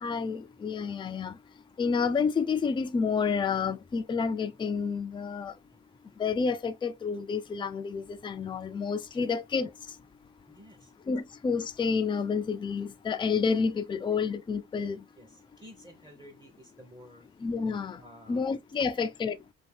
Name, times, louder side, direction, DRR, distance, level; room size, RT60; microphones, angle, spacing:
voice 1, 0.0-1.3 1.8-5.5 6.2-9.7 11.1-15.0 17.4-18.0 18.3-19.4, left 5 dB, 15° left, 0.3 m, -29 dB
voice 2, 10.5-10.9 14.7-14.9 15.2-17.3 18.0-18.4 18.8-18.9, equal, 15° right, 0.8 m, -52 dB
2.7 x 2.6 x 3.3 m
cardioid pair, 90°, 30 cm